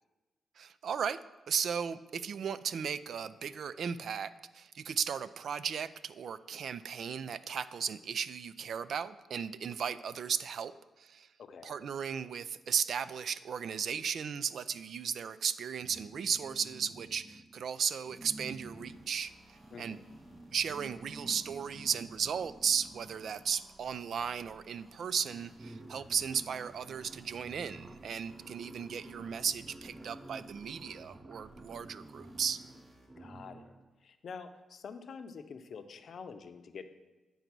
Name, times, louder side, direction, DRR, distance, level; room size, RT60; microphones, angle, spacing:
voice 1, 0.6-1.2 1.5-10.7 11.0-11.3 11.6-19.3 19.8-20.0 20.5-32.6, right 7 dB, 70° right, 15 dB, 0.3 m, -35 dB
voice 2, 11.4-11.8 19.7-20.0 33.2-33.7 34.0-36.9, left 5 dB, 65° left, 9 dB, 0.6 m, -47 dB
sound 1, 15.8-17.6 18.0-23.7 24.7-24.8 25.0-33.9, right 1 dB, 25° right, 0.6 m, -51 dB
sound 2, 18.5-33.1, right 1 dB, 50° right, 1.7 m, -61 dB
9.4 x 3.9 x 6.0 m, 1.2 s
cardioid pair, 85°, 0 cm